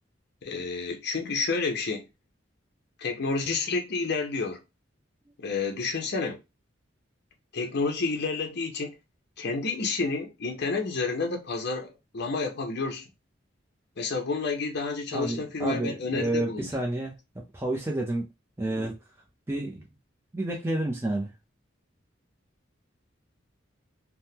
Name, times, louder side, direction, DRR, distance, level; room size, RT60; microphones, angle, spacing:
voice 1, 0.4-2.0 3.0-4.6 5.4-6.4 7.5-8.9 9.4-11.9 12.1-13.0 14.0-16.7, left 4 dB, 60° left, 0.6 m, -30 dB
voice 2, 15.1-17.1 17.5-18.3 18.6-19.0 19.5-19.9 20.3-21.3, right 1 dB, 15° right, 0.5 m, -30 dB
3.5 x 2.0 x 2.8 m
head